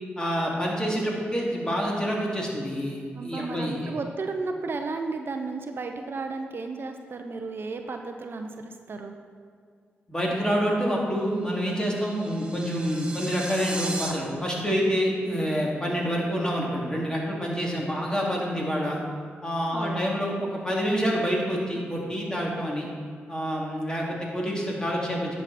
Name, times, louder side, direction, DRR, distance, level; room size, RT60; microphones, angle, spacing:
voice 1, 0.2-3.9 10.1-19.0 19.4-22.9 23.3-25.4, equal, 15° left, -3 dB, 2.7 m, -27 dB
voice 2, 3.1-9.2 19.7-20.2, right 3 dB, 55° right, 5 dB, 0.7 m, -33 dB
sound 1, 11.4-14.1, right 1 dB, 20° right, 1.4 m, -36 dB
10.5 x 6.8 x 4.2 m, 2.1 s
supercardioid pair, 50°, 5 cm